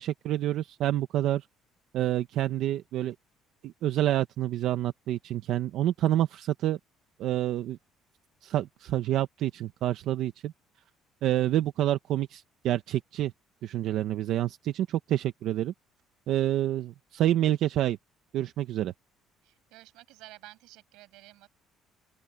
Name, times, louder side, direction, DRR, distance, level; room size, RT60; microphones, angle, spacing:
voice 1, 0.0-1.4 1.9-3.1 3.6-6.8 7.2-7.8 8.4-10.5 11.2-13.3 13.6-15.7 16.3-18.0 18.3-18.9, right 13 dB, 60° right, 0.9 m, -28 dB
voice 2, 19.4-21.5, right 19 dB, 90° right, 6.3 m, -51 dB
open air
cardioid pair, 155°, 0 cm